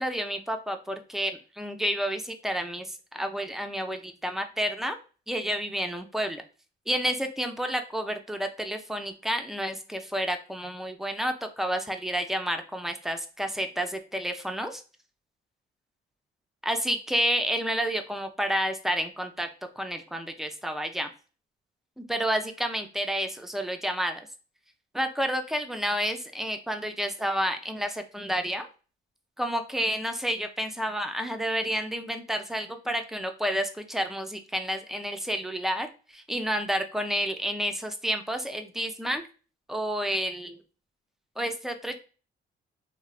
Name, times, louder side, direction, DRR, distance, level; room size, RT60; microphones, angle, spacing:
voice 1, 0.0-5.0 5.3-6.4 6.9-14.8 16.6-19.5 19.8-21.1 22.0-24.2 24.9-28.7 29.4-39.2 39.7-40.6 41.4-42.0, equal, ahead, 6 dB, 0.4 m, -30 dB
3.1 x 2.0 x 2.3 m, 0.35 s
cardioid pair, 90°, 20 cm